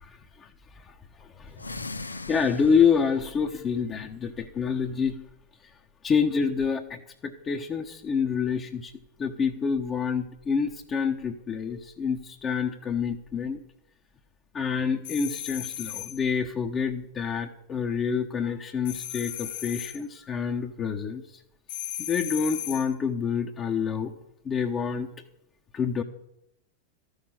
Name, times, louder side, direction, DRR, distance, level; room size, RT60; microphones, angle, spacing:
voice 1, 0.0-5.2 5.6-5.7 6.0-8.9 9.2-13.6 14.5-21.4 22.0-24.1 24.4-25.1 25.7-26.0, left 6 dB, 25° left, 1 dB, 1.0 m, -28 dB
sound 1, 1.5-3.1, left 3 dB, 80° left, 0.5 m, -39 dB
sound 2, 15.0-16.2 18.8-20.0 21.7-22.9, left 12 dB, 55° left, 0.8 m, -36 dB
13.5 x 6.6 x 9.1 m, 0.80 s
figure-of-eight pair, 90°, 0 cm